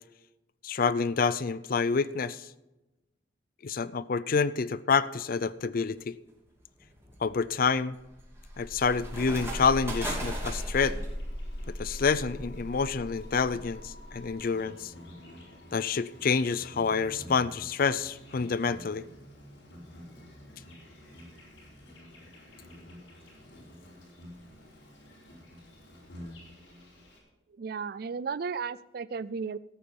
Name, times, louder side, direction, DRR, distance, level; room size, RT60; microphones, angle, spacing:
voice 1, 0.6-2.5 3.6-6.1 7.2-8.0 8.6-11.0 11.8-14.9 15.7-19.0, left 5 dB, 50° left, 18 dB, 0.5 m, -28 dB
sound 1, 5.5-5.9 6.5-11.1, right 1 dB, 15° right, 2.7 m, -40 dB
sound 2, 8.1-17.7, equal, 30° left, 2.8 m, -40 dB
Insect, 10.2-27.2, left 1 dB, 90° left, 4.6 m, -50 dB
voice 2, 27.6-29.6, right 5 dB, 55° right, 19 dB, 0.4 m, -34 dB
14.5 x 8.6 x 5.3 m, 1.0 s
head